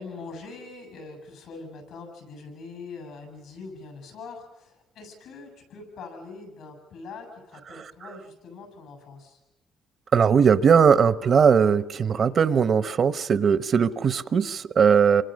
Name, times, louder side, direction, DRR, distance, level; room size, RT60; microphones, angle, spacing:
voice 1, 0.0-9.4, left 4 dB, 85° left, 6 dB, 7.6 m, -42 dB
voice 2, 10.1-15.2, right 6 dB, 50° right, 15 dB, 0.9 m, -19 dB
28.5 x 25.0 x 6.5 m, 1.0 s
cardioid pair, 90°, 0 cm